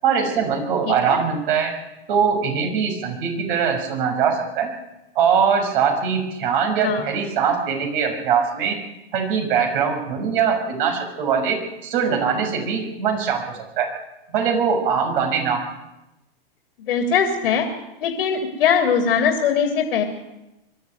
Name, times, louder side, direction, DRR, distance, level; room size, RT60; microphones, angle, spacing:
voice 1, 0.0-1.7 2.1-4.7 5.1-8.8 9.1-13.4 13.8-13.9 14.3-15.7, right 6 dB, 60° right, 4 dB, 6.1 m, -22 dB
voice 2, 0.8-1.2 6.8-7.1 16.9-17.7 18.0-20.0, left 7 dB, 70° left, 3 dB, 3.1 m, -21 dB
23.0 x 12.5 x 9.3 m, 0.97 s
hypercardioid pair, 120°, 30 cm